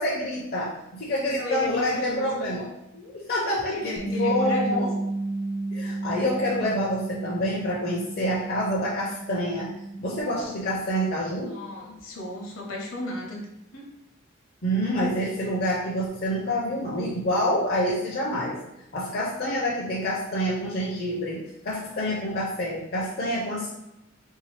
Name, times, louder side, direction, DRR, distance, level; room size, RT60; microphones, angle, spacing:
voice 1, 0.0-4.9 5.7-11.5 14.6-18.6 18.9-23.7, equal, 45° left, -4 dB, 0.5 m, -27 dB
voice 2, 1.3-2.3 3.7-4.9 11.5-13.4 13.7-13.8, left 2 dB, 70° left, 0 dB, 0.8 m, -34 dB
Bass guitar, 4.0-10.2, right 2 dB, 10° right, 0.3 m, -32 dB
3.4 x 2.7 x 3.2 m, 0.88 s
head